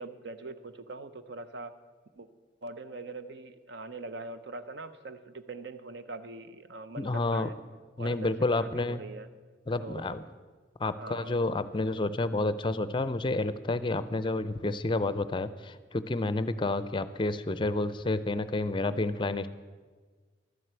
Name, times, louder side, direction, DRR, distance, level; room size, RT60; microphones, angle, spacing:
voice 1, 0.0-1.7 2.2-2.3 2.6-7.5 8.0-9.3 9.8-10.2 11.0-11.4, right 3 dB, 70° right, 11 dB, 0.7 m, -42 dB
voice 2, 7.0-7.5 8.0-9.0 9.7-10.2 10.8-19.5, left 2 dB, 25° left, 14 dB, 0.5 m, -30 dB
12.5 x 7.6 x 8.1 m, 1.5 s
head